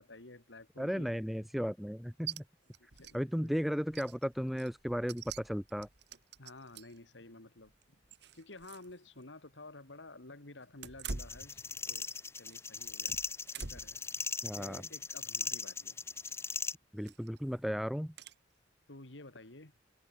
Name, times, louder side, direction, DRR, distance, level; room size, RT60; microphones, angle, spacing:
voice 1, 0.0-1.1 2.8-3.5 6.4-7.7 8.3-12.1 12.3-13.1 13.5-16.0 18.9-19.7, left 2 dB, 85° left, 2.6 m, -52 dB
voice 2, 0.8-2.4 3.1-5.9 14.4-14.8 16.9-18.1, equal, ahead, 1.3 m, -35 dB
sound 1, 2.3-2.4 2.7-3.2 3.5-3.6 3.9-7.0 7.6-8.9 9.2-9.3 10.7-12.2 12.5-14.0 14.5-14.8 16.2-16.5 17.0-17.4 18.2-18.4, right 5 dB, 65° right, 2.2 m, -46 dB
sound 2, 11.1-16.8, left 5 dB, 15° left, 0.5 m, -38 dB
head